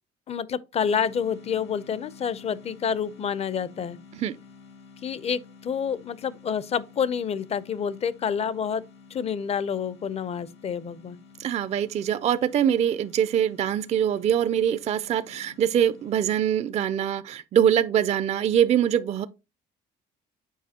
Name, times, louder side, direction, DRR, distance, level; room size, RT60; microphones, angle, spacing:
voice 1, 0.3-4.0 5.0-8.8 9.1-11.2, left 7 dB, 40° left, 0.5 m, -28 dB
sound 1, 0.8-16.3, left 5 dB, 75° left, 1.6 m, -51 dB
voice 2, 11.4-19.3, right 9 dB, 40° right, 0.4 m, -23 dB
7.3 x 4.8 x 2.8 m
cardioid pair, 110°, 17 cm